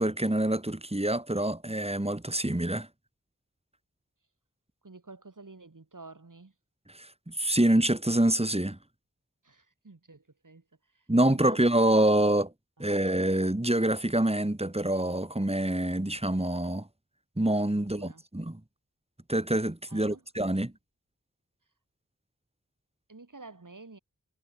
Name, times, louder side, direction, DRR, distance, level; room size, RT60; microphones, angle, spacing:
voice 1, 0.0-2.9 6.9-8.8 11.1-12.5 12.8-16.9 17.4-18.6 19.3-20.7, right 1 dB, 20° right, 2.8 m, -26 dB
voice 2, 4.8-6.5 9.4-10.6 11.2-11.8 12.8-13.2 17.8-18.2 19.9-20.2 23.1-24.0, right 3 dB, 65° right, 5.1 m, -50 dB
wide cardioid pair, 45°, 33 cm